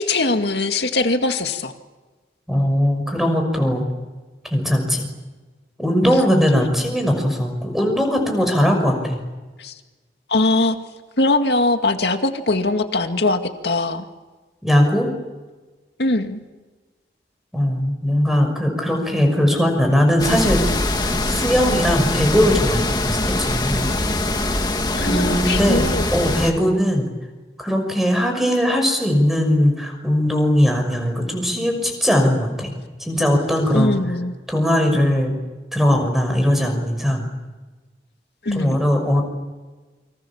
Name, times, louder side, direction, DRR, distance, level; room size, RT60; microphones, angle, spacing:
voice 1, 0.0-1.7 6.0-6.2 9.6-9.7 10.3-10.8 11.2-14.1 16.0-16.4 24.9-26.1 33.7-34.3 38.4-38.8, left 2 dB, 75° left, 6 dB, 2.2 m, -21 dB
voice 2, 2.5-3.8 4.4-5.1 5.8-9.2 14.6-15.1 17.5-20.8 21.3-23.9 25.0-25.8 26.1-27.1 27.6-32.7 33.0-34.0 34.5-35.3 35.7-37.3 38.5-39.2, equal, ahead, 4 dB, 6.1 m, -19 dB
sound 1, 20.2-26.5, left 2 dB, 25° left, 2.2 m, -22 dB
29.0 x 25.5 x 7.3 m, 1.3 s
head